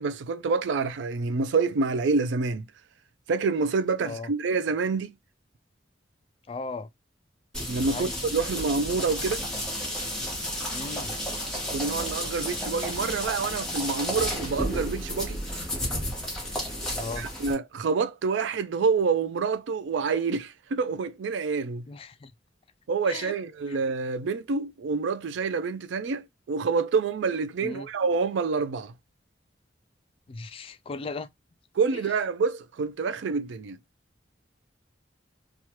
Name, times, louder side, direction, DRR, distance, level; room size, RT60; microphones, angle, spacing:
voice 1, 0.0-2.7 3.3-5.2 7.7-9.4 11.7-15.4 17.2-21.9 22.9-28.9 31.8-33.8, right 4 dB, 75° right, 0.4 m, -27 dB
voice 2, 6.5-6.9 7.9-8.2 10.7-11.1 16.9-17.3 21.9-22.3 23.1-23.3 23.7-23.8 27.6-27.9 30.3-31.3 31.9-32.0, left 3 dB, 30° left, 0.3 m, -37 dB
sound 1, 7.5-17.5, equal, 5° left, 1.2 m, -32 dB
3.0 x 2.3 x 2.9 m
head